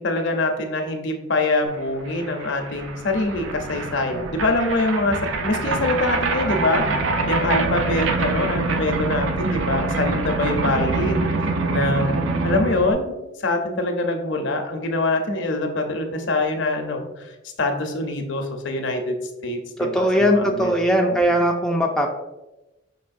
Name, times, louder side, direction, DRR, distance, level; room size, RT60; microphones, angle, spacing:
voice 1, 0.0-5.2 5.4-6.8 7.3-11.3 11.7-12.1 12.4-13.1 13.4-17.3 17.6-20.7 21.0-21.2, left 2 dB, 65° left, 4 dB, 0.6 m, -24 dB
sound 1, 1.8-1.9 2.0-12.9, right 3 dB, 80° right, 0.4 m, -25 dB
voice 2, 19.8-22.1, equal, 5° left, 0 dB, 0.3 m, -19 dB
5.5 x 3.0 x 2.5 m, 0.98 s
head